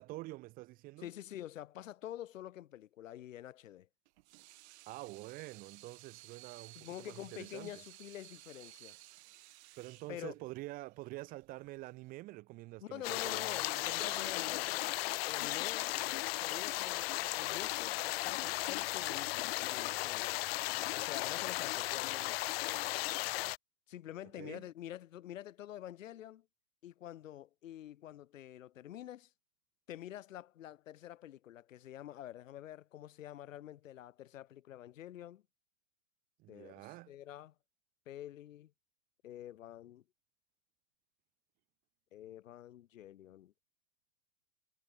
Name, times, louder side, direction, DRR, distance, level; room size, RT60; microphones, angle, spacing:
voice 1, 0.0-1.1 4.9-7.8 9.8-14.7 24.4-24.7 36.4-37.1, right 19 dB, 20° right, 0.5 m, -47 dB
voice 2, 1.0-3.9 6.7-9.1 10.1-10.3 12.8-15.0 15.3-15.9 16.4-20.3 20.9-22.5 23.9-26.5 26.8-29.3 29.9-35.4 36.5-37.5 38.1-38.7 39.2-40.0 42.1-43.5, left 12 dB, 70° left, 2.2 m, -47 dB
Water tap faucet / Sink (filling or washing), 4.1-12.1, right 19 dB, 55° right, 2.2 m, -57 dB
sound 1, 13.0-23.6, left 19 dB, 45° left, 0.5 m, -36 dB
hypercardioid pair, 120°, 41 cm